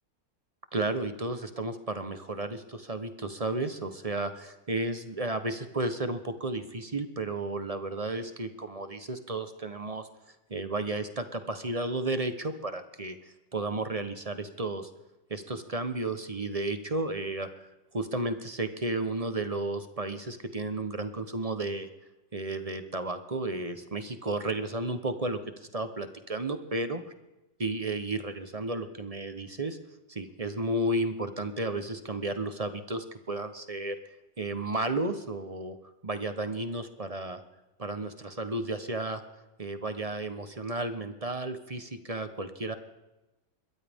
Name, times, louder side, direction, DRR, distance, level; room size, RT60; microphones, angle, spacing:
voice 1, 0.7-10.1 10.5-14.9 15.3-17.7 17.9-21.9 22.3-25.4 25.7-27.0 27.6-29.8 30.1-34.0 34.4-35.8 36.0-37.4 37.8-39.2 39.6-42.8, right 2 dB, 25° right, 9 dB, 0.8 m, -33 dB
22.0 x 14.0 x 3.6 m, 1.0 s
omnidirectional pair, 1.8 m